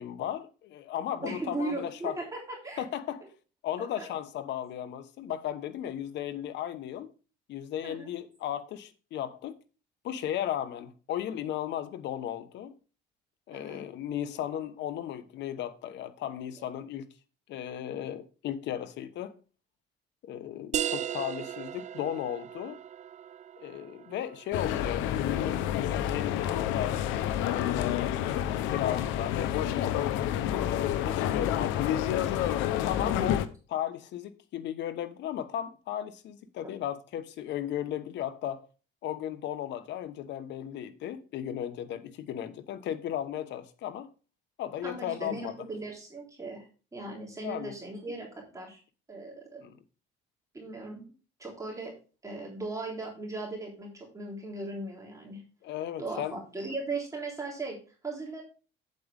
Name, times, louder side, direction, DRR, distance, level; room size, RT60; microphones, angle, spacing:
voice 1, 0.0-2.2 2.8-3.3 3.6-7.1 7.5-9.6 10.0-12.7 13.5-17.1 17.5-19.4 20.2-22.8 23.6-27.0 27.4-32.3 32.8-33.4 33.7-38.7 39.0-44.1 44.6-45.5 47.4-47.7 49.6-49.7 55.6-56.3, left 11 dB, 70° left, 1.1 m, -35 dB
voice 2, 1.2-2.8 3.8-4.1 7.8-8.1 13.5-13.8 33.0-33.3 36.6-36.7 44.8-48.8 49.1-49.6 50.5-51.0 51.4-51.9 52.2-55.4 56.0-57.8 58.0-58.4, right 2 dB, 15° right, 3.6 m, -38 dB
sound 1, 20.7-26.1, right 10 dB, 40° right, 0.4 m, -38 dB
sound 2, 24.5-33.5, left 11 dB, 90° left, 0.8 m, -29 dB
8.6 x 7.9 x 3.5 m
cardioid pair, 110°, 19 cm